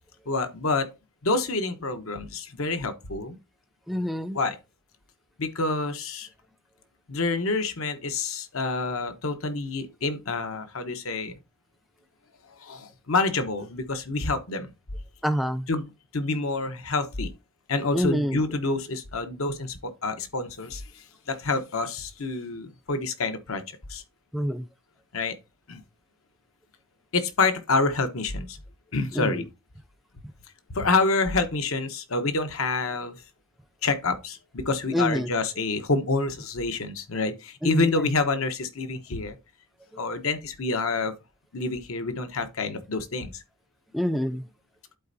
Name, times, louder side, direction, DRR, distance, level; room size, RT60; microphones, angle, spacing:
voice 1, 0.3-0.9 1.2-3.4 4.3-4.6 5.4-6.3 7.1-11.3 12.6-14.7 15.7-15.9 16.1-17.3 17.7-24.0 25.1-25.4 25.7-25.8 27.1-28.6 28.9-29.4 30.7-33.2 33.8-39.4 40.0-41.1 41.5-43.4, left 3 dB, 85° left, 1.0 m, -27 dB
voice 2, 3.9-4.4 15.2-15.7 17.9-18.4 24.3-24.7 29.1-29.5 34.9-35.3 37.6-38.1 39.9-40.0 43.9-44.5, equal, ahead, 0.4 m, -27 dB
11.5 x 4.3 x 2.7 m
head